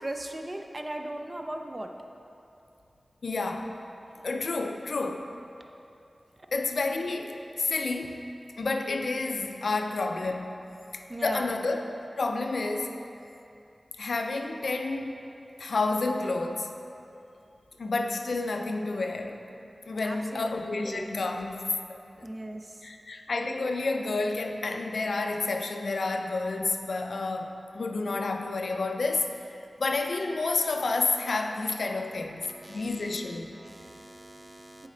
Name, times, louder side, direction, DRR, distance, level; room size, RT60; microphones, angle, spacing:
voice 1, 0.0-1.9 11.1-11.5 20.0-20.5 20.8-21.1 22.2-22.8 32.5-34.9, right 1 dB, 30° right, 4 dB, 0.4 m, -39 dB
voice 2, 3.2-3.7 4.2-5.3 6.5-8.2 8.6-10.6 10.9-11.8 12.2-13.0 14.0-15.1 15.6-16.8 17.8-19.4 19.9-21.6 21.9-22.0 22.8-32.4 32.7-33.5, left 3 dB, 75° left, 4 dB, 0.4 m, -30 dB
7.1 x 4.2 x 3.8 m, 2.7 s
wide cardioid pair, 95°, 0 cm